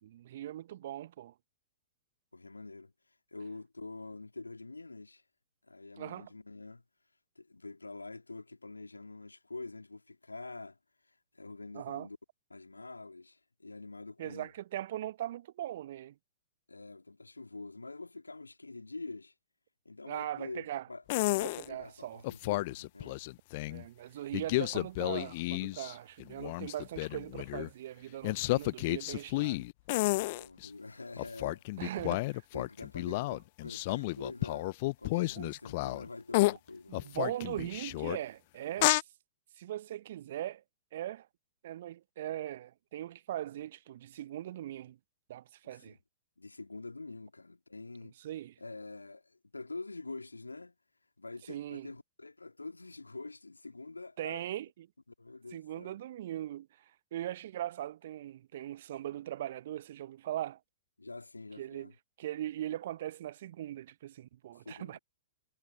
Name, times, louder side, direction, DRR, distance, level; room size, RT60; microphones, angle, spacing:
voice 1, 0.0-1.3 6.0-6.3 11.7-12.1 14.2-16.1 20.1-20.9 21.4-22.2 23.7-29.6 31.8-32.4 33.1-33.2 35.3-35.5 36.9-39.0 39.6-40.6 40.9-41.3 41.6-45.0 45.3-46.0 48.2-48.5 51.5-51.9 54.2-54.9 55.5-56.7 57.1-60.6 61.6-61.9 62.2-65.0, right 12 dB, 55° right, 1.1 m, -40 dB
voice 2, 2.3-2.9 3.3-5.2 5.6-6.8 7.4-10.8 11.1-12.2 12.5-14.5 16.7-19.3 19.9-21.0 21.3-23.2 28.5-28.7 30.3-31.8 32.5-37.2 45.6-46.0 46.4-48.1 48.6-50.8 51.2-54.4 55.2-56.0 61.0-61.9 64.6-65.0, left 3 dB, 80° left, 2.1 m, -46 dB
sound 1, 21.1-21.6 22.2-23.8 24.3-25.9 26.2-27.7 28.2-30.7 31.2-36.1 36.3-36.6 36.9-38.2 38.8-39.0, left 21 dB, 45° left, 0.6 m, -31 dB
figure-of-eight pair, 105°, 0 cm